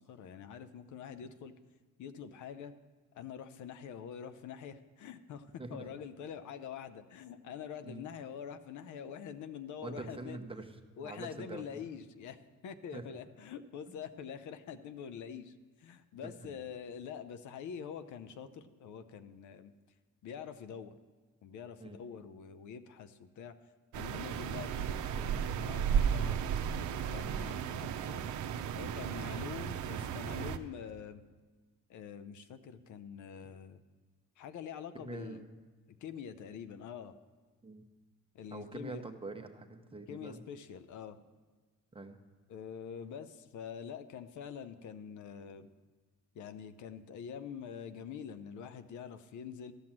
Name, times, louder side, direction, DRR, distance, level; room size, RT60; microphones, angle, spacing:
voice 1, 0.0-1.5 2.0-2.7 3.1-10.4 11.0-19.7 20.2-21.0 21.4-23.5 23.9-26.4 26.8-28.2 28.7-31.2 31.9-33.8 34.4-35.4 36.0-37.1 38.3-39.0 40.1-41.2 42.5-45.7 46.3-49.7, left 7 dB, 75° left, 11 dB, 0.7 m, -45 dB
voice 2, 5.6-5.9 7.8-8.0 9.8-11.8 12.9-13.0 13.9-14.0 16.2-16.3 21.8-22.0 35.0-35.6 37.6-37.8 38.5-40.4 41.9-42.2, right 2 dB, 20° right, 5 dB, 1.0 m, -45 dB
sound 1, 23.9-30.6, right 8 dB, 70° right, 0.7 m, -34 dB
13.0 x 6.1 x 7.4 m, 1.4 s
cardioid pair, 90°, 30 cm